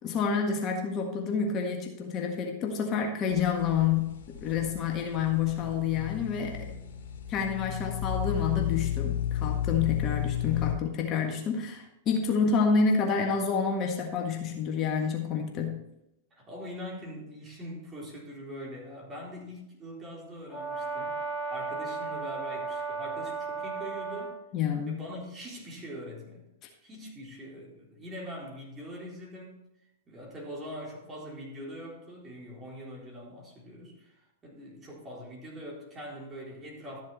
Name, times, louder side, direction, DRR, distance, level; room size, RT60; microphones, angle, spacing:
voice 1, 0.0-6.7 7.3-15.8 24.5-25.0, left 6 dB, 35° left, 2 dB, 1.6 m, -28 dB
sound 1, 3.3-10.7, left 10 dB, 65° left, 2.5 m, -33 dB
voice 2, 16.3-21.2 21.5-24.4 24.9-26.5 26.8-29.6 30.1-37.0, equal, 25° right, -3 dB, 4.0 m, -43 dB
Brass instrument, 20.5-24.4, right 4 dB, 5° right, 4.0 m, -35 dB
13.0 x 7.3 x 4.2 m, 0.85 s
hypercardioid pair, 105°, 0 cm